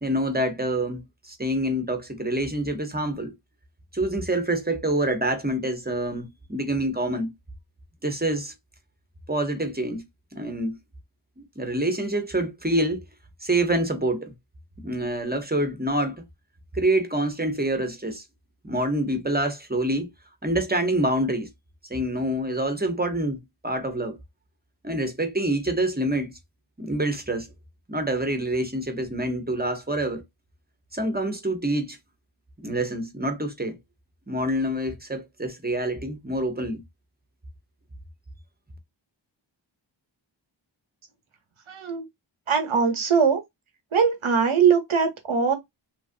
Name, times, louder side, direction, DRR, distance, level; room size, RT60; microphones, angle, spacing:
voice 1, 0.0-3.3 3.9-7.3 8.0-8.5 9.3-10.0 10.3-10.7 11.4-13.0 13.4-14.3 14.8-16.2 16.7-18.2 18.6-20.1 20.4-21.5 21.9-24.2 24.8-26.3 26.8-27.5 27.9-30.2 30.9-32.0 32.6-33.8 34.3-36.8, right 1 dB, 20° right, 0.8 m, -26 dB
voice 2, 41.7-42.1 42.5-43.4 43.9-45.5, right 6 dB, 90° right, 0.9 m, -21 dB
2.9 x 2.4 x 2.5 m
wide cardioid pair, 40°, 47 cm